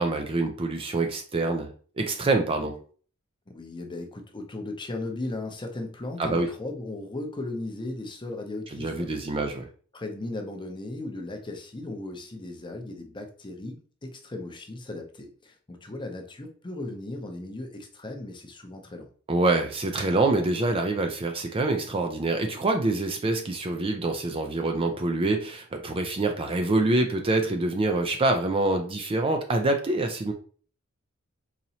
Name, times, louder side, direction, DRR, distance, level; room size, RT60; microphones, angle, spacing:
voice 1, 0.0-1.7 2.0-2.8 6.2-6.5 8.8-9.7 19.3-30.3, right 2 dB, 25° right, 4 dB, 0.4 m, -25 dB
voice 2, 3.5-9.1 9.9-19.1, left 2 dB, 20° left, 4 dB, 0.6 m, -37 dB
4.0 x 3.0 x 2.8 m, 0.42 s
head